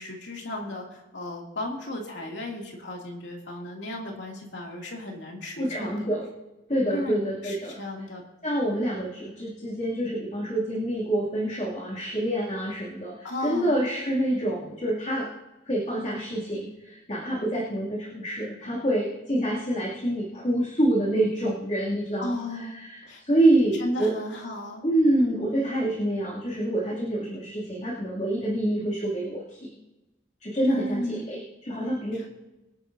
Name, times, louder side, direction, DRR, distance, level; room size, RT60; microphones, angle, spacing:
voice 1, 0.0-6.1 6.9-8.2 13.2-13.8 22.2-22.8 23.1-23.2 23.8-24.8 25.2-25.7 30.7-31.3 32.1-32.3, left 1 dB, 70° left, -1 dB, 2.5 m, -35 dB
voice 2, 5.6-6.3 6.7-7.8 8.4-15.3 15.7-24.1 24.8-29.6 30.4-32.2, right 1 dB, 35° left, -6 dB, 2.6 m, -27 dB
24.5 x 9.1 x 2.7 m, 1.0 s
head